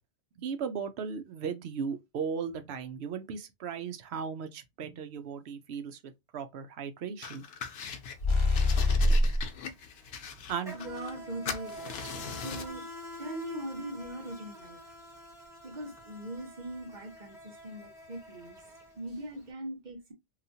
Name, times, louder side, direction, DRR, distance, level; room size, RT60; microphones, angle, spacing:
voice 1, 0.4-7.4 10.5-10.8, right 6 dB, 75° right, 0.9 m, -36 dB
sound 1, 7.2-8.2 8.5-11.2 11.5-12.8, left 6 dB, 70° left, 0.8 m, -40 dB
Insect, 7.9-8.1 8.4-19.4, equal, 5° right, 1.1 m, -47 dB
sound 2, 8.2-9.4, left 2 dB, 35° left, 0.6 m, -24 dB
voice 2, 10.7-14.8 15.6-18.6 19.0-20.1, right 1 dB, 45° right, 1.1 m, -41 dB
3.0 x 2.4 x 2.6 m
omnidirectional pair, 1.1 m